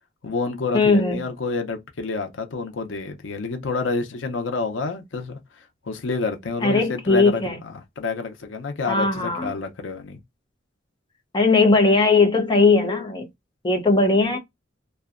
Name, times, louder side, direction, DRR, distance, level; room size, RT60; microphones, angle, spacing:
voice 1, 0.2-10.2, left 3 dB, 90° left, 0.6 m, -29 dB
voice 2, 0.7-1.2 6.6-7.6 8.9-9.5 11.3-13.3 13.6-14.4, left 3 dB, 25° left, 0.6 m, -18 dB
2.6 x 2.1 x 2.4 m
head